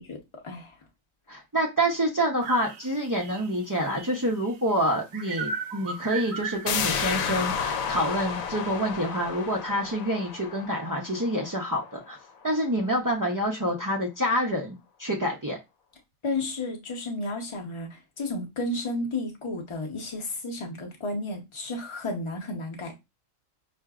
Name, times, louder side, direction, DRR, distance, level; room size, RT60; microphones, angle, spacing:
voice 1, 0.4-0.7 16.2-22.9, left 2 dB, 25° left, 0.7 m, -32 dB
voice 2, 1.3-12.2 12.4-15.6, equal, 30° right, 0.3 m, -27 dB
sound 1, 2.4-4.6 5.1-7.2, right 5 dB, 60° right, 0.8 m, -36 dB
sound 2, 6.7-12.1 12.5-12.6, left 6 dB, 85° left, 1.0 m, -31 dB
5.6 x 2.6 x 2.3 m
omnidirectional pair, 1.4 m